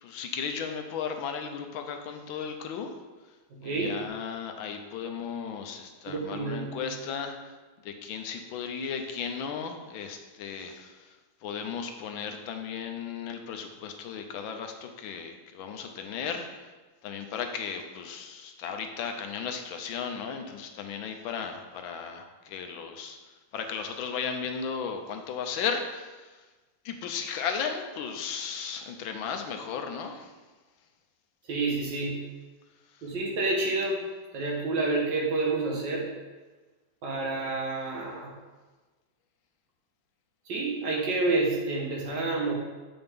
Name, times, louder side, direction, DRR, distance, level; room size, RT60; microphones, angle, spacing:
voice 1, 0.0-3.0 3.6-7.5 7.8-11.2 11.4-16.7 17.0-23.2 23.5-26.4 26.8-30.3 32.9-33.1, left 6 dB, 85° left, 5 dB, 1.5 m, -35 dB
voice 2, 3.5-4.0 6.1-6.8 31.5-32.2 33.0-34.0 34.3-36.1 37.0-38.3 40.5-42.5, right 3 dB, 70° right, -2 dB, 2.1 m, -29 dB
7.7 x 5.7 x 3.6 m, 1.3 s
omnidirectional pair, 2.1 m